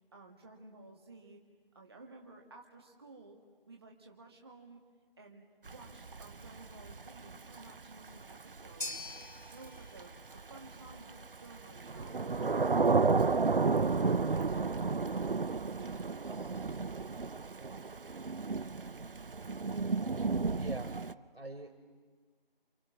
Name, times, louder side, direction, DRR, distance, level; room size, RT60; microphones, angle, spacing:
voice 1, 0.1-1.4 1.7-3.4 3.7-4.8 5.2-9.1 9.5-13.1 13.6-15.0 15.6-16.6, right 2 dB, 25° right, 0 dB, 1.8 m, -54 dB
Thunder / Rain, 5.7-21.1, right 4 dB, 65° right, 0.7 m, -32 dB
sound 1, 8.8-17.2, left 2 dB, 55° left, 3.1 m, -50 dB
voice 2, 20.5-21.1 21.3-21.8, right 2 dB, 80° right, 6 dB, 4.8 m, -43 dB
29.5 x 28.5 x 6.2 m, 1.4 s
figure-of-eight pair, 170°, 29 cm